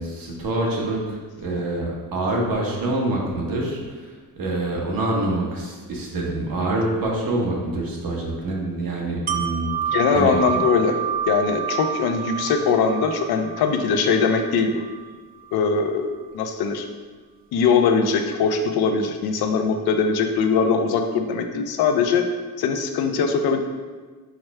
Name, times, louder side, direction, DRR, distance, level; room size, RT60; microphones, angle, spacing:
voice 1, 0.0-4.1 4.3-10.6, right 2 dB, 70° right, -2 dB, 1.1 m, -26 dB
Wind chime, 9.3-15.1 15.5-15.6, right 8 dB, 25° right, 0.4 m, -29 dB
voice 2, 9.9-11.0 11.3-14.8 15.5-16.1 16.3-16.9 17.5-22.2 22.6-23.6, left 5 dB, 90° left, 6 dB, 0.5 m, -21 dB
4.6 x 2.1 x 4.6 m, 1.4 s
cardioid pair, 105°, 36 cm